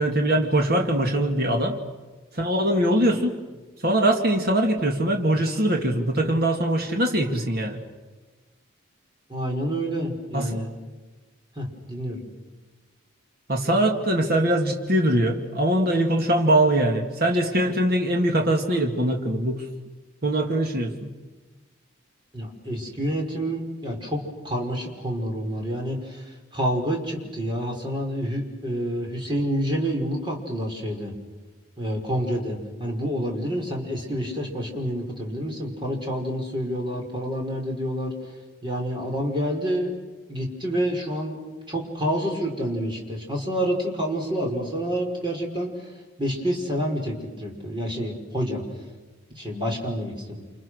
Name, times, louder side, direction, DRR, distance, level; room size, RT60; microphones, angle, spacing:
voice 1, 0.0-1.8 2.3-3.4 3.8-7.8 10.3-10.5 13.5-19.6 20.2-21.1, right 1 dB, 45° right, 3 dB, 2.4 m, -22 dB
voice 2, 9.3-10.7 11.6-12.2 22.3-31.1 31.8-38.1 38.6-39.9 40.3-41.4 41.7-45.7 46.2-48.6 49.3-50.4, equal, 20° right, 1 dB, 5.5 m, -28 dB
29.5 x 28.5 x 6.5 m, 1.3 s
head